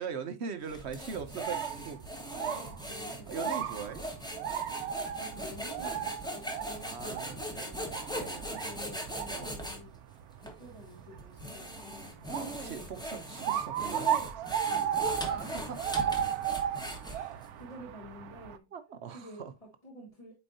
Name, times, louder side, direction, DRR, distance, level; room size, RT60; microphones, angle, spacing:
voice 1, 0.0-2.0 3.3-4.1 6.8-7.7 8.1-8.5 9.3-9.6 12.4-14.1 15.2-15.8 18.7-19.5, right 6 dB, 55° right, 0.9 m, -41 dB
sound 1, 0.7-9.8 10.4-10.5 11.2-17.4, equal, 5° left, 1.1 m, -39 dB
sound 2, 1.2-18.6, right 9 dB, 75° right, 1.1 m, -36 dB
voice 2, 2.3-3.3 4.9-8.1 8.5-10.0 10.3-12.2 14.7-15.0 15.3-15.6 17.0-18.7 19.1-20.3, equal, 25° left, 1.5 m, -50 dB
8.6 x 4.5 x 2.7 m
omnidirectional pair, 1.6 m